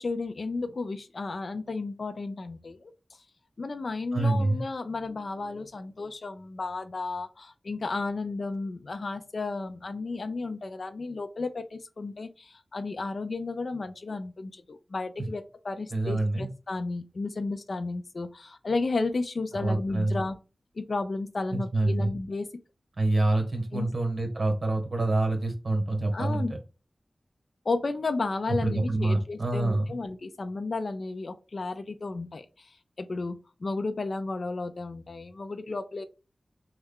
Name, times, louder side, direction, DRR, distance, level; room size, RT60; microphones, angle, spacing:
voice 1, 0.0-3.2 3.6-20.4 20.8-22.5 23.7-23.9 26.1-26.5 27.7-36.0, left 3 dB, 65° left, 10 dB, 0.4 m, -33 dB
voice 2, 4.1-4.6 15.9-16.5 19.5-20.2 21.5-22.1 23.0-26.4 28.6-29.8, right 2 dB, 60° right, 3 dB, 1.2 m, -26 dB
3.2 x 2.3 x 3.4 m, 0.31 s
wide cardioid pair, 65°, 0 cm